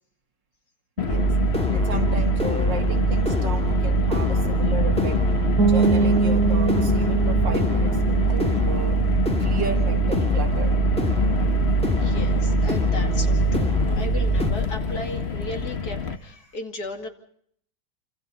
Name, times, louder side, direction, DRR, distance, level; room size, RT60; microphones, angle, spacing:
Car, 1.0-16.2, left 6 dB, 40° left, 1.4 m, -27 dB
voice 1, 1.0-1.3 1.7-5.2 5.6-9.0 9.4-10.7, right 2 dB, 80° right, 4 dB, 2.9 m, -34 dB
sound 1, 1.1-14.5, right 3 dB, 5° left, 1.8 m, -23 dB
sound 2, 5.6-11.2, right 5 dB, 60° right, 3.9 m, -26 dB
voice 2, 11.9-17.1, left 2 dB, 60° left, 4 dB, 3.0 m, -35 dB
28.0 x 26.5 x 4.2 m, 0.65 s
omnidirectional pair, 1.9 m